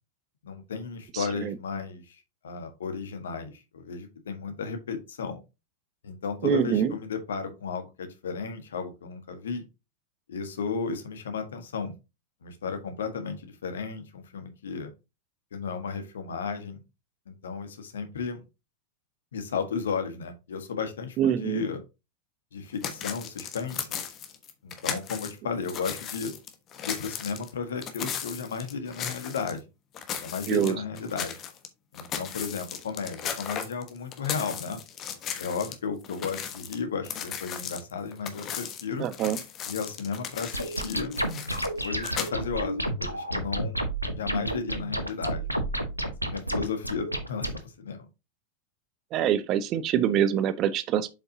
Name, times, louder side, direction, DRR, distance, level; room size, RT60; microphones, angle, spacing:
voice 1, 0.4-2.2 2.4-5.4 6.0-9.6 10.3-11.9 12.4-14.9 15.5-16.8 17.3-18.4 19.3-21.8 22.5-24.0 24.6-26.3 26.8-29.6 30.2-31.4 31.9-34.8 35.4-39.1 39.7-41.1 41.8-43.8 44.2-45.4 46.0-48.0, left 5 dB, 65° left, 1.5 m, -34 dB
voice 2, 1.1-1.5 6.4-6.9 21.2-21.6 30.5-30.8 39.0-39.4 49.1-51.1, right 9 dB, 35° right, 0.7 m, -25 dB
sound 1, 22.8-25.3 25.6-29.6 29.9-31.7 31.9-35.8 36.0-42.3, left 8 dB, 30° left, 1.2 m, -36 dB
sound 2, 40.5-47.6, right 1 dB, 90° right, 0.9 m, -31 dB
7.5 x 5.4 x 2.8 m
figure-of-eight pair, 90°, 0 cm